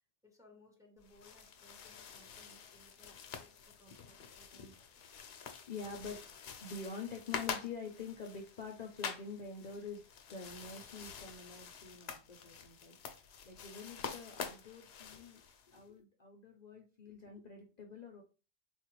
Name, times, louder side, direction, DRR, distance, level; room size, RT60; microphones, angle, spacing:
voice 1, 0.2-5.2, equal, 5° right, 1 dB, 0.7 m, -64 dB
sound 1, 1.0-15.8, left 7 dB, 80° left, 0.9 m, -47 dB
voice 2, 5.3-6.2 6.6-10.0 10.3-13.0 13.4-18.2, left 4 dB, 50° left, 1 dB, 0.6 m, -46 dB
3.9 x 2.4 x 3.0 m, 0.33 s
omnidirectional pair, 1.0 m